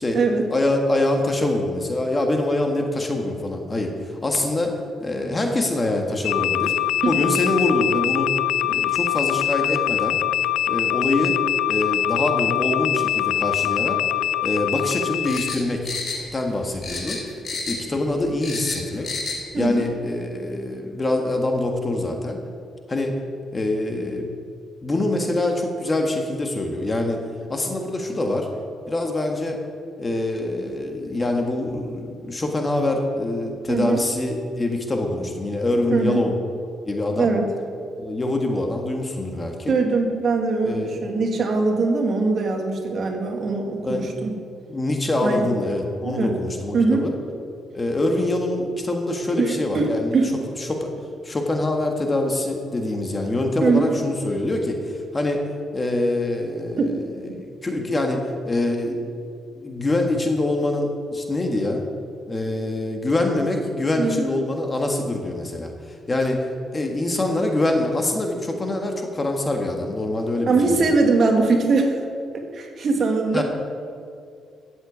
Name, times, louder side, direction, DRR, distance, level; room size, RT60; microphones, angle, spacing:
voice 1, 0.5-4.7 5.0-6.7 7.0-8.3 8.6-10.2 10.7-11.4 11.7-14.0 14.4-15.9 16.3-17.2 17.7-19.1 19.6-22.4 22.9-23.1 23.5-24.3 24.8-27.2 27.5-28.5 28.9-29.6 30.0-36.3 36.8-37.3 38.0-39.7 40.6-41.0 43.8-44.1 44.7-47.1 47.7-50.2 50.6-50.9 51.2-55.4 55.7-59.1 59.5-61.8 62.3-70.9 73.3-73.4, left 2 dB, 20° left, 3 dB, 1.6 m, -24 dB
sound 1, 6.2-15.6, left 12 dB, 90° left, 0.3 m, -23 dB
sound 2, 15.2-16.5 16.8-17.9 18.2-19.4 19.7-19.8, left 3 dB, 40° left, 2.7 m, -31 dB
voice 2, 19.5-19.9 33.7-34.0 35.9-36.2 37.2-37.5 39.7-44.3 45.2-45.5 46.0-46.3 46.7-47.1 49.4-50.3 53.6-53.9 56.8-56.9 64.0-64.3 70.5-72.0 72.5-73.4, right 3 dB, 45° right, 2 dB, 2.0 m, -21 dB
14.0 x 8.0 x 8.0 m, 2.3 s
cardioid pair, 130°, 0 cm